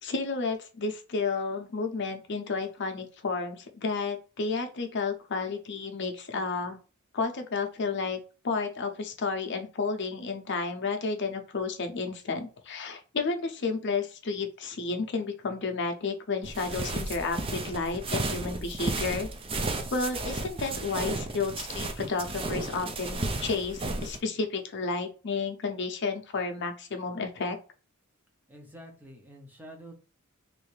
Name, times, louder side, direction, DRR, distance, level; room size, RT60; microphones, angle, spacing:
voice 1, 0.0-6.8 7.1-8.2 8.4-19.3 19.9-27.6, left 4 dB, 55° left, 5 dB, 0.6 m, -31 dB
sound 1, 16.4-24.2, right 2 dB, 25° right, 0.4 m, -33 dB
voice 2, 28.5-29.9, right 1 dB, 10° right, 1 dB, 0.8 m, -47 dB
3.2 x 2.6 x 3.2 m, 0.36 s
head